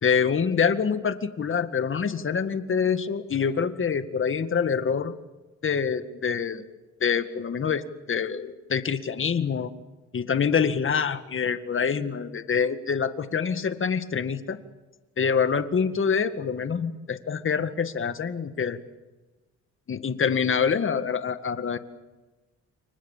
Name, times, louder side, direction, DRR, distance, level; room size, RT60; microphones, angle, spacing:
voice 1, 0.0-5.1 5.6-6.6 7.0-9.7 10.1-14.6 15.2-18.8 19.9-21.8, left 6 dB, 40° left, 10 dB, 2.0 m, -26 dB
29.0 x 24.5 x 7.4 m, 1.2 s
cardioid pair, 90°, 30 cm